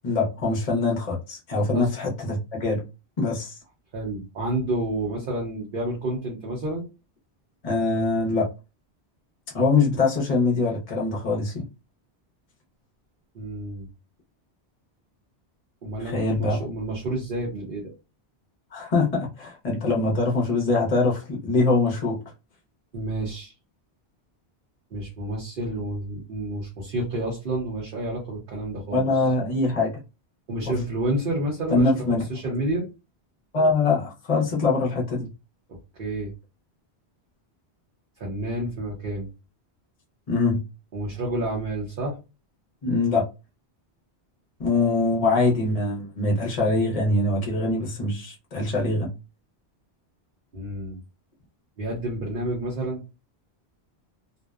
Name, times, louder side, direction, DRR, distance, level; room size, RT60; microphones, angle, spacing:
voice 1, 0.0-2.8 3.2-3.5 7.6-8.5 9.5-11.5 16.0-16.6 18.7-22.2 28.9-29.9 31.7-32.2 33.5-35.3 40.3-40.6 42.8-43.3 44.6-49.1, left 3 dB, 40° left, -2 dB, 0.7 m, -23 dB
voice 2, 3.9-6.9 13.3-13.9 15.8-17.9 22.9-23.5 24.9-29.0 30.5-32.8 36.0-36.3 38.2-39.3 40.9-42.2 50.5-51.0 51.8-53.0, right 1 dB, 55° right, -3 dB, 0.9 m, -29 dB
2.6 x 2.1 x 2.3 m, 0.28 s
omnidirectional pair, 1.1 m